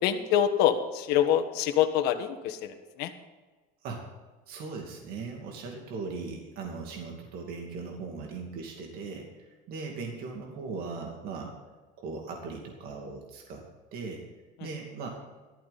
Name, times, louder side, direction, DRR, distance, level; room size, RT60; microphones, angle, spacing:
voice 1, 0.0-3.1, left 10 dB, 60° left, 7 dB, 1.5 m, -26 dB
voice 2, 4.5-11.5 12.0-13.6 13.9-14.2 14.6-15.1, right 4 dB, 55° right, 1 dB, 2.5 m, -39 dB
15.0 x 13.5 x 4.2 m, 1.3 s
cardioid pair, 155°, 19 cm